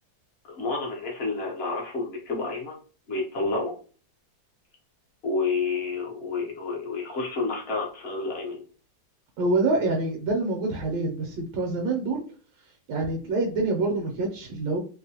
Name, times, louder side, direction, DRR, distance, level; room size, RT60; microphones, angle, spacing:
voice 1, 0.4-2.8 3.1-3.7 5.2-8.6, left 3 dB, 50° left, -1 dB, 0.8 m, -29 dB
voice 2, 9.4-12.2 12.9-14.8, right 2 dB, 75° right, 1 dB, 1.2 m, -26 dB
3.0 x 2.1 x 2.8 m, 0.39 s
omnidirectional pair, 1.9 m